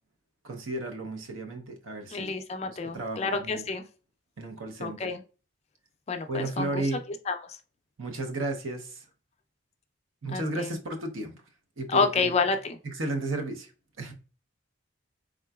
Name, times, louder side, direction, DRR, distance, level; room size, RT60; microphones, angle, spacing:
voice 1, 0.4-2.3 2.7-3.6 4.4-5.1 6.3-7.0 8.0-9.0 10.2-11.4 11.8-12.3 12.8-13.7 14.0-14.1, right 2 dB, 80° right, 0.7 m, -33 dB
voice 2, 2.1-3.8 4.8-5.2 6.1-6.8 7.3-7.4 10.3-10.8 11.9-12.8, left 4 dB, 30° left, 0.3 m, -29 dB
3.7 x 3.7 x 2.3 m
head